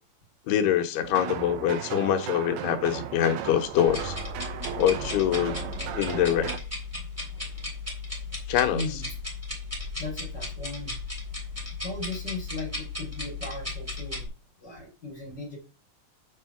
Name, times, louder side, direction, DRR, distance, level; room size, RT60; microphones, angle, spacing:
voice 1, 0.5-4.2 4.8-5.6 6.0-6.5 8.5-9.0, left 10 dB, 90° left, 3.1 m, -24 dB
sound 1, 1.0-6.6, right 11 dB, 85° right, 2.8 m, -35 dB
sound 2, 3.9-14.3, left 3 dB, 5° right, 2.5 m, -36 dB
voice 2, 6.9-7.5 8.7-9.1 10.0-11.0 11.8-14.3 14.6-15.6, left 2 dB, 30° left, 2.8 m, -37 dB
7.4 x 5.6 x 5.7 m
omnidirectional pair, 4.5 m